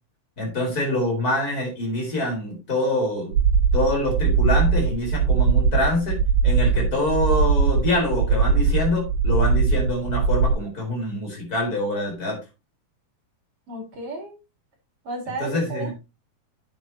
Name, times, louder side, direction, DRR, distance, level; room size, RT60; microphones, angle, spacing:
voice 1, 0.4-3.3 3.7-6.2 6.4-12.4 15.4-15.9, left 1 dB, 25° left, 1 dB, 4.7 m, -25 dB
sound 1, 3.3-10.5, right 5 dB, 70° right, 3.0 m, -20 dB
voice 2, 13.7-14.3 15.0-15.9, right 2 dB, 45° right, -1 dB, 5.3 m, -33 dB
9.6 x 9.1 x 2.9 m, 0.26 s
omnidirectional pair, 3.6 m